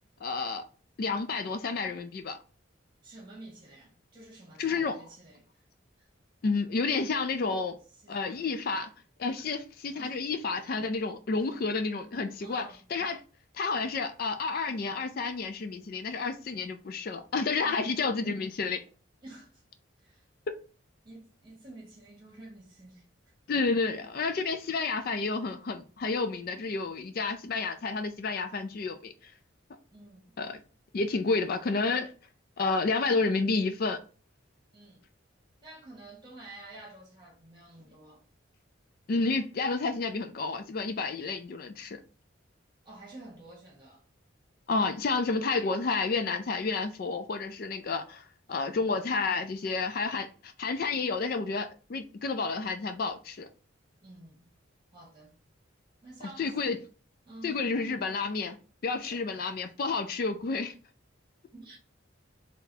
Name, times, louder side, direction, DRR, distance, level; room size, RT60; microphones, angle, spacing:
voice 1, 0.2-0.6 1.0-2.4 4.6-4.9 6.4-7.8 8.1-8.9 9.2-13.2 13.5-18.8 23.5-29.3 30.4-30.6 30.9-32.1 32.6-34.0 39.1-42.0 44.7-53.5 56.4-56.8 57.4-58.6 58.8-60.7, left 4 dB, 45° left, 0.3 m, -30 dB
voice 2, 3.0-5.6 6.0-6.1 8.0-8.5 9.9-10.2 11.5-11.6 12.4-12.9 17.6-18.0 19.2-19.6 20.0-20.3 21.0-23.0 29.9-30.4 34.7-35.0 35.6-38.2 42.8-44.0 48.5-48.8 54.0-54.5 54.9-55.3 56.0-56.6 57.2-57.6 59.0-59.2 61.5-61.8, right 2 dB, 25° right, 1.6 m, -50 dB
3.9 x 3.4 x 2.7 m
head